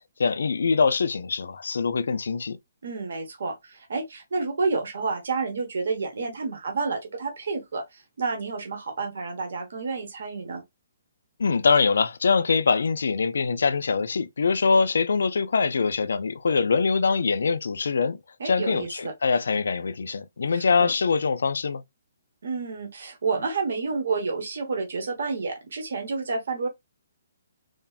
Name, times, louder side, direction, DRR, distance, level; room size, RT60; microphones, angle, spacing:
voice 1, 0.2-2.6 11.4-18.2 18.4-21.8, left 5 dB, 80° left, 0.3 m, -23 dB
voice 2, 2.8-10.6 18.4-19.1 20.8-20.9 22.4-26.7, right 4 dB, 65° right, 1.0 m, -29 dB
3.2 x 2.1 x 2.3 m
hypercardioid pair, 175°, 0 cm